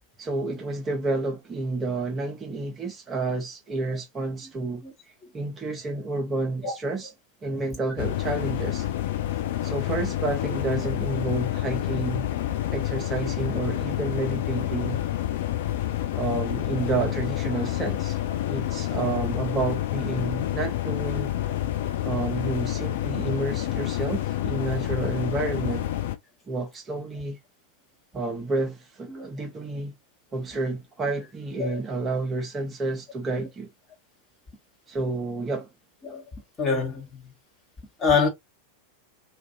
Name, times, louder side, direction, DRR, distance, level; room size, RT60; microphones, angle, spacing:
voice 1, 0.2-4.8 5.3-7.1 7.4-8.8 9.6-12.3 12.7-15.0 16.1-18.2 18.5-21.3 22.0-25.9 26.5-27.4 28.1-29.9 30.3-33.7 34.9-35.7, right 3 dB, 20° right, 0.7 m, -30 dB
sound 1, 8.0-26.2, left 13 dB, 55° left, 0.3 m, -28 dB
voice 2, 36.6-37.3 38.0-38.3, left 5 dB, 20° left, 1.2 m, -25 dB
2.5 x 2.4 x 2.5 m
figure-of-eight pair, 90°, 0 cm